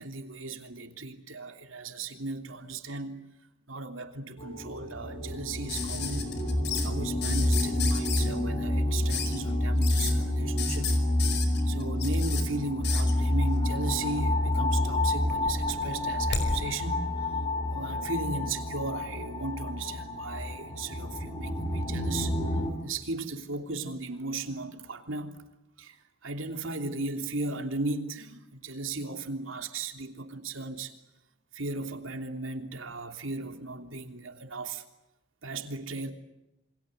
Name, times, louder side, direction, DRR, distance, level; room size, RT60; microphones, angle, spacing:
voice 1, 0.0-3.3 3.7-6.3 6.8-10.9 11.7-17.1 17.7-22.3 22.8-25.4 25.8-26.0 26.2-30.9 31.5-34.8 35.4-36.1, right 3 dB, 75° right, 3.2 m, -36 dB
sound 1, 4.4-22.7, left 1 dB, 30° left, 6.7 m, -29 dB
sound 2, 5.7-6.9 7.2-8.3 9.1-9.4 9.8-10.1 10.6-12.4 12.8-13.1 14.2-14.8 15.1-16.5 17.8-17.9, left 6 dB, 60° left, 5.1 m, -34 dB
28.0 x 25.5 x 8.1 m
head